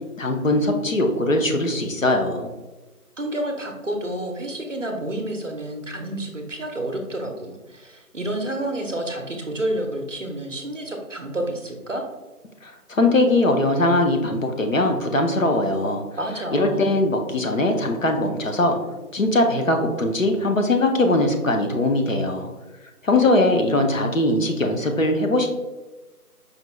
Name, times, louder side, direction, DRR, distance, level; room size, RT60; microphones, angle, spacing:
voice 1, 0.2-2.5 12.6-16.0 16.5-18.8 19.1-22.5 23.0-25.5, left 2 dB, 60° left, 4 dB, 0.6 m, -21 dB
voice 2, 3.2-12.0 16.2-16.9, right 1 dB, 55° right, 3 dB, 0.6 m, -29 dB
5.0 x 2.2 x 3.1 m, 1.1 s
figure-of-eight pair, 175°, 45 cm